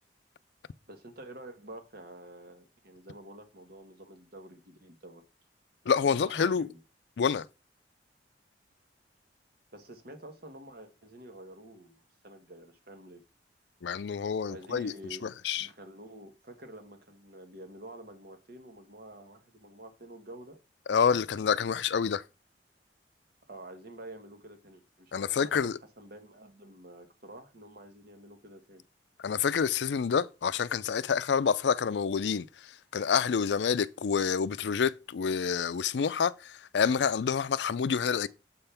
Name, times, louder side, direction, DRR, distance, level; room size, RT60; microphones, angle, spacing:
voice 1, 0.9-5.2 6.0-6.8 9.7-13.2 14.5-15.3 15.6-20.6 23.5-25.7 26.0-28.8, right 1 dB, 60° right, 1.5 m, -48 dB
voice 2, 5.9-6.7 7.2-7.5 13.8-14.9 15.2-15.7 20.9-22.2 25.1-25.8 29.2-38.3, left 6 dB, 75° left, 0.4 m, -28 dB
7.7 x 3.5 x 5.7 m
head